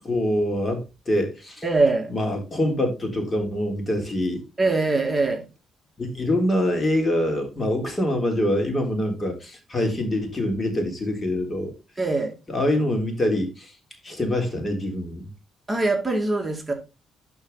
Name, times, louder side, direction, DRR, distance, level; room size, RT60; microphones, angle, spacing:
voice 1, 0.0-1.6 2.1-4.4 6.0-11.7 12.5-13.7 14.0-15.3, left 1 dB, 25° left, 3.4 m, -25 dB
voice 2, 1.6-2.1 4.6-5.4 12.0-12.3 15.7-16.7, right 3 dB, 15° right, 2.3 m, -22 dB
12.0 x 4.6 x 4.0 m
cardioid pair, 90°, 0 cm